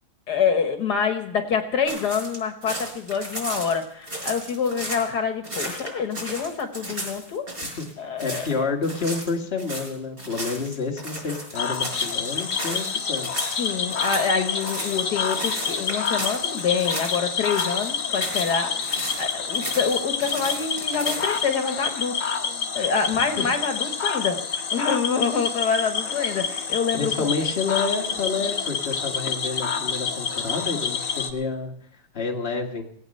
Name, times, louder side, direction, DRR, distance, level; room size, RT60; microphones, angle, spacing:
voice 1, 0.3-7.5 8.0-8.5 13.6-22.3 22.8-24.4 24.7-27.3, left 6 dB, 75° left, 6 dB, 1.8 m, -26 dB
sound 1, 1.9-5.1 5.4-7.9 8.2-8.5 8.8-17.2 17.4-18.5 18.8-21.4, right 1 dB, 35° right, 5.1 m, -34 dB
voice 2, 8.2-13.4 23.4-23.5 26.9-32.8, left 4 dB, 35° left, 1 dB, 1.8 m, -29 dB
Cricket / Frog, 11.5-31.3, left 6 dB, 55° left, 1.4 m, -28 dB
19.0 x 8.5 x 6.5 m, 0.69 s
omnidirectional pair, 1.8 m